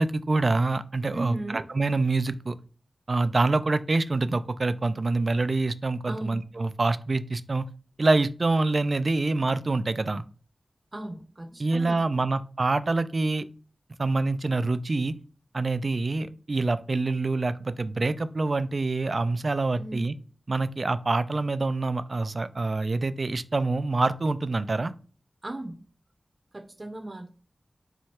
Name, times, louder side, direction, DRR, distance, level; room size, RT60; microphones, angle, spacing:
voice 1, 0.0-2.5 3.1-7.7 8.0-10.2 11.6-13.5 14.0-15.1 15.5-20.1 20.5-24.9, right 3 dB, 60° right, 13 dB, 0.4 m, -26 dB
voice 2, 1.1-1.7 6.1-6.5 10.9-12.3 19.8-20.1 25.4-25.8 26.5-27.3, right 1 dB, 45° right, 4 dB, 0.7 m, -37 dB
4.5 x 2.3 x 4.3 m, 0.38 s
cardioid pair, 40°, 0 cm